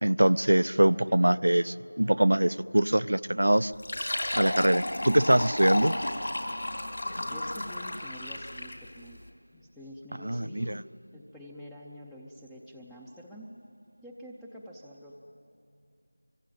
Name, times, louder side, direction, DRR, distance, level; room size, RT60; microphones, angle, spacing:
voice 1, 0.0-3.7 4.3-6.0 10.2-10.8, right 1 dB, 70° right, 17 dB, 0.6 m, -23 dB
Fill (with liquid), 3.7-8.9, left 1 dB, 55° left, 3.4 m, -32 dB
voice 2, 7.2-9.2 9.5-13.5 14.0-15.2, equal, 5° left, -4 dB, 0.6 m, -47 dB
25.0 x 23.5 x 9.0 m, 2.5 s
figure-of-eight pair, 175°, 0 cm